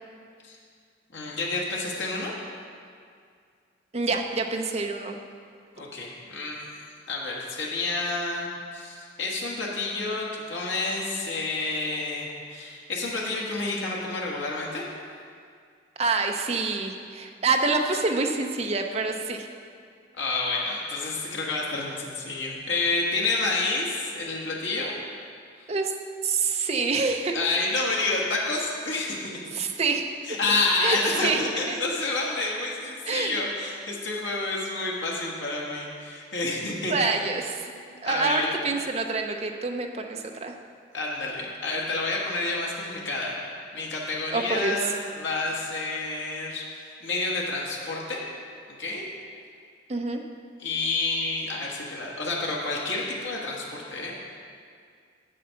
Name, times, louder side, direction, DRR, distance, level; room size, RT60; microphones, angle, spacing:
voice 1, 1.1-2.3 5.8-6.6 7.1-14.8 20.1-24.9 27.3-29.6 30.3-36.9 37.7-37.8 38.0-38.6 40.9-43.3 43.7-48.2 48.8-49.0 50.6-54.1, left 3 dB, 75° left, -3 dB, 1.4 m, -29 dB
voice 2, 3.9-5.2 16.0-19.5 25.7-25.9 26.2-27.4 29.5-30.0 30.8-31.4 31.7-31.8 33.1-33.3 36.9-37.7 38.0-40.5 44.3-44.8 49.9-50.2, right 3 dB, 35° right, 4 dB, 0.6 m, -26 dB
7.6 x 7.5 x 5.7 m, 2.2 s
head